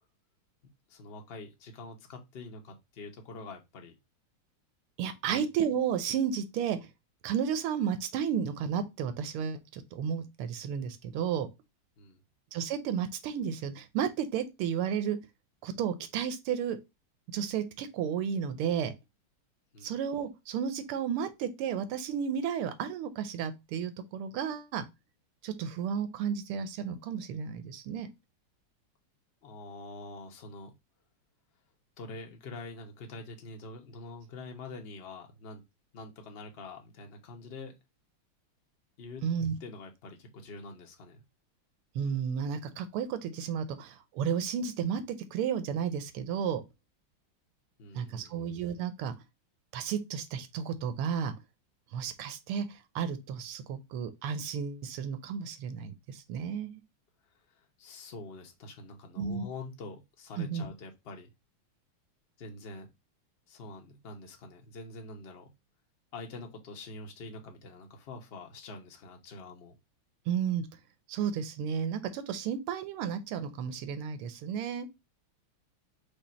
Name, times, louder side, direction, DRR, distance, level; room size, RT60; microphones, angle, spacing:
voice 1, 0.9-3.9 5.2-5.5 12.0-12.2 19.7-20.0 29.4-30.7 32.0-35.6 35.9-37.7 39.0-39.2 39.6-41.2 47.8-48.4 57.5-61.3 62.4-62.9 63.5-65.5 66.1-69.7, left 3 dB, 60° left, 0.6 m, -45 dB
voice 2, 5.0-6.8 7.2-11.5 12.5-15.2 15.6-16.8 17.3-18.9 19.8-24.9 25.4-28.1 39.2-39.5 41.9-46.6 47.9-49.1 49.7-51.3 51.9-56.7 59.2-59.4 60.4-60.7 70.3-70.7 71.1-74.9, right 7 dB, 85° right, 1.6 m, -32 dB
5.0 x 2.4 x 4.2 m
omnidirectional pair, 2.4 m